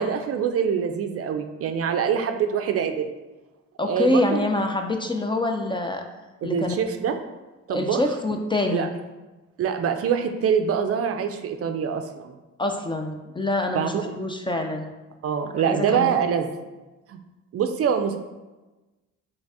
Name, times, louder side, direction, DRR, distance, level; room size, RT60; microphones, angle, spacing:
voice 1, 0.0-3.1 3.8-4.5 6.4-7.2 7.7-8.0 8.7-8.9 9.6-12.4 13.7-14.0 15.2-16.5 17.1-17.2 17.5-18.2, right 7 dB, 50° right, 7 dB, 0.4 m, -24 dB
voice 2, 3.8-6.0 6.4-6.7 7.7-8.9 12.6-14.9 15.7-16.2, left 2 dB, 15° left, 4 dB, 0.4 m, -25 dB
4.0 x 3.3 x 3.5 m, 1.1 s
cardioid pair, 90°, 30 cm